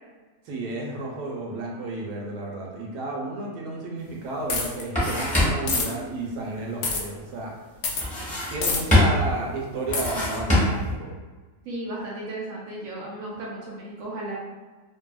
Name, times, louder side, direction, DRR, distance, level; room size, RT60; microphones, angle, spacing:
voice 1, 0.5-7.5 8.5-11.1, right 2 dB, 80° right, -1 dB, 1.2 m, -32 dB
sound 1, 4.1-4.2 4.5-5.8 8.0-8.7 8.9-9.4 9.9-10.9, left 1 dB, 5° left, 0.8 m, -23 dB
sound 2, 4.5-4.8 5.7-5.9 6.8-7.0 7.8-8.1 8.6-8.8 9.9-10.1, left 4 dB, 75° left, 0.6 m, -26 dB
voice 2, 11.6-14.4, right 1 dB, 65° right, -5 dB, 0.9 m, -34 dB
2.7 x 2.7 x 2.3 m, 1.3 s
omnidirectional pair, 1.7 m